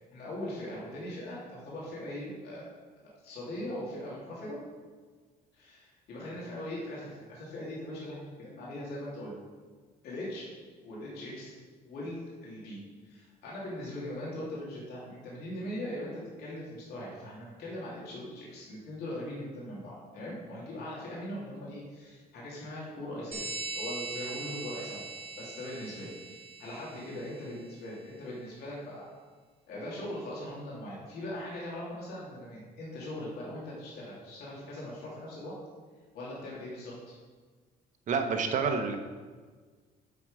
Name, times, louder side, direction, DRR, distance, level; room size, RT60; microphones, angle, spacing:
voice 1, 0.1-2.7 3.2-4.6 5.5-9.3 10.0-10.5 10.8-11.6 11.8-12.8 13.0-25.1 25.4-29.1 29.7-35.5 36.1-37.2, left 1 dB, 70° left, -6 dB, 2.7 m, -40 dB
sound 1, 23.3-27.6, right 3 dB, 30° right, 1.8 m, -41 dB
voice 2, 38.1-39.0, right 5 dB, 50° right, 5 dB, 1.0 m, -28 dB
7.3 x 6.3 x 4.9 m, 1.5 s
cardioid pair, 110°, 17 cm